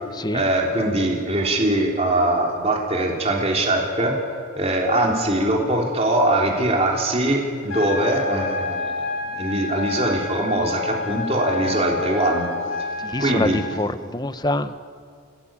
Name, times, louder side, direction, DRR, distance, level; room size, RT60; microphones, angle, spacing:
voice 1, 0.3-4.2 4.5-9.1 9.3-12.5 13.2-13.6, right 1 dB, 30° right, 0 dB, 3.3 m, -22 dB
sound 1, 7.7-13.7, left 4 dB, 80° left, 4.4 m, -29 dB
voice 2, 13.0-14.7, left 1 dB, 20° left, 11 dB, 0.9 m, -25 dB
28.5 x 17.5 x 8.9 m, 2.1 s
head